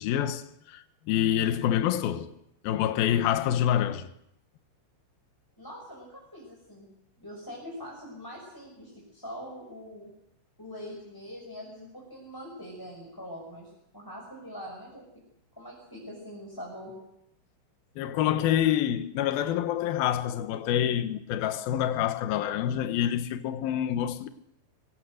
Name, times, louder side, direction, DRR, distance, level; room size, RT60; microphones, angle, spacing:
voice 1, 0.0-2.4 2.6-4.1 18.0-24.3, left 10 dB, 70° left, 2.3 m, -27 dB
voice 2, 5.6-6.9 7.2-10.1 10.6-15.0 15.6-16.9, equal, 5° left, 5.8 m, -43 dB
25.5 x 24.0 x 6.5 m
omnidirectional pair, 5.8 m